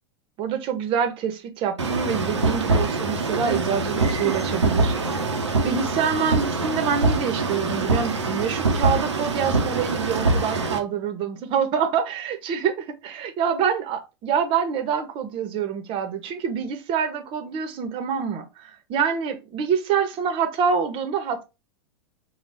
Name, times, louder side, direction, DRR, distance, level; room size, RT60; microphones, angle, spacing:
voice 1, 0.4-5.3 5.6-21.4, right 7 dB, 40° right, 0.9 m, -26 dB
sound 1, 1.8-10.8, right 3 dB, 85° right, 0.8 m, -24 dB
4.2 x 2.3 x 3.3 m
figure-of-eight pair, 95°, 15 cm